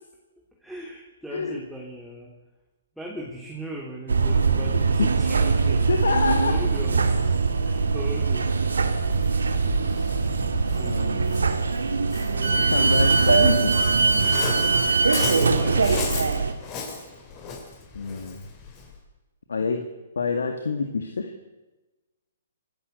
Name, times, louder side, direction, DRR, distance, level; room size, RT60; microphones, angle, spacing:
voice 1, 0.6-2.3 2.9-5.9 6.4-8.6 10.7-11.2 12.3-13.2 15.2-16.3, equal, ahead, -3 dB, 3.4 m, -38 dB
voice 2, 1.3-1.6 5.9-6.6 10.8-11.4 12.7-13.8 17.9-18.4 19.5-21.3, left 4 dB, 80° left, 6 dB, 2.1 m, -27 dB
sound 1, 4.1-16.5, right 4 dB, 85° right, 2.3 m, -22 dB
Waves surf, 5.1-19.0, left 4 dB, 30° left, 6.4 m, -36 dB
28.5 x 12.5 x 8.3 m, 1.1 s
hypercardioid pair, 135°, 0 cm